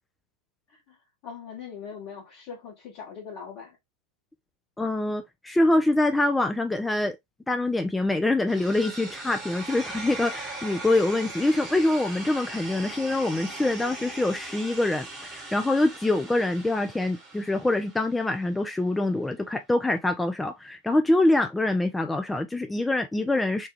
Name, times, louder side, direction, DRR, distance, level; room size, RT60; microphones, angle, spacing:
voice 1, 1.2-3.8, left 6 dB, 40° left, 1.1 m, -41 dB
voice 2, 4.8-7.2 7.5-23.7, left 2 dB, 5° left, 0.3 m, -25 dB
sound 1, 8.5-18.5, right 2 dB, 15° right, 1.0 m, -40 dB
3.2 x 2.2 x 3.1 m
figure-of-eight pair, 90°, 0 cm